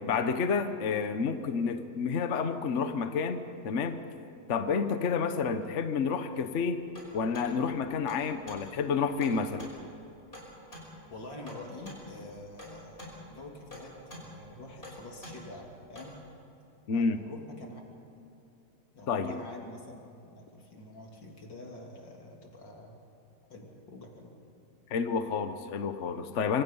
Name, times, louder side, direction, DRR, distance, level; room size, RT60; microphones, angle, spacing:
voice 1, 0.0-4.0 4.5-6.9 7.1-9.7 16.9-17.3 19.1-19.4 24.9-26.6, left 5 dB, 45° left, 8 dB, 1.2 m, -30 dB
sound 1, 6.8-16.2, equal, 30° left, 5.9 m, -48 dB
voice 2, 11.1-16.2 16.9-17.8 18.9-23.0 23.5-24.4, left 2 dB, 85° left, 1 dB, 3.7 m, -46 dB
26.0 x 25.5 x 5.6 m, 2.7 s
omnidirectional pair, 1.9 m